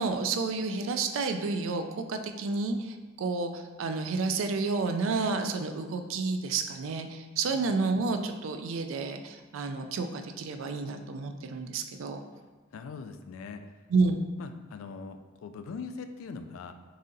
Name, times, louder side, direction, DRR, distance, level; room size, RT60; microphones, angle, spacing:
voice 1, 0.0-12.2 13.9-14.2, right 4 dB, 70° right, 7 dB, 0.3 m, -30 dB
voice 2, 12.7-13.7 14.4-16.7, left 5 dB, 80° left, 8 dB, 0.3 m, -41 dB
4.1 x 3.6 x 2.6 m, 1.3 s
head